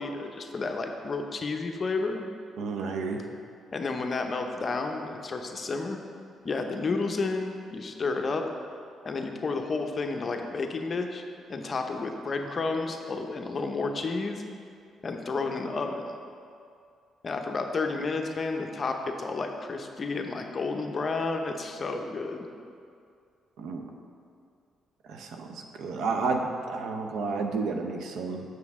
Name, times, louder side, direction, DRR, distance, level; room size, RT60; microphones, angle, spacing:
voice 1, 0.0-2.2 3.7-6.0 6.4-8.4 9.0-11.2 11.5-14.4 15.0-16.1 17.2-22.5, left 3 dB, 40° left, 4 dB, 0.6 m, -31 dB
voice 2, 2.6-3.2 23.6-23.8 25.1-28.4, right 4 dB, 75° right, 4 dB, 0.6 m, -31 dB
6.9 x 6.1 x 3.6 m, 2.4 s
cardioid pair, 90°, 0 cm